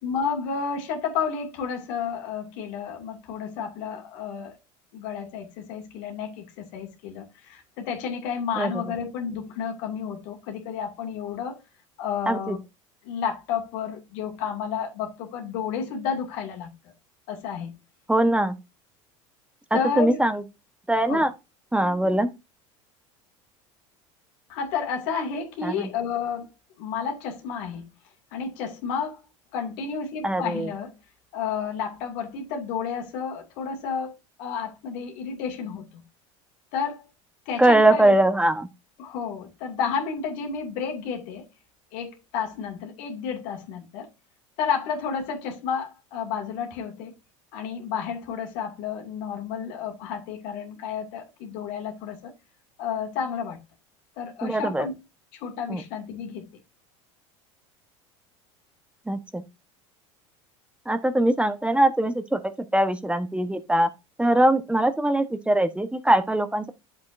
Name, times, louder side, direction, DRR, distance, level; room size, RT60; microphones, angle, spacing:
voice 1, 0.0-4.5 4.9-11.6 12.0-12.6 13.0-16.7 17.3-17.7 19.7-20.2 21.1-21.3 24.5-26.5 26.8-27.9 28.3-29.2 29.5-30.9 31.3-36.0 36.7-37.0 37.5-38.1 39.0-41.5 41.9-44.1 44.6-47.2 47.5-52.3 52.8-53.6 54.2-55.0 55.4-56.5, left 6 dB, 70° left, 2.6 m, -31 dB
voice 2, 12.3-12.6 18.1-18.5 19.7-20.4 20.9-21.3 21.7-22.3 25.6-25.9 30.2-30.7 37.6-38.7 54.4-54.9 55.7-55.8 59.1-59.4 60.9-62.4 62.7-63.9 64.2-66.7, right 1 dB, 5° right, 1.2 m, -21 dB
8.7 x 7.5 x 2.7 m
hypercardioid pair, 85°, 16 cm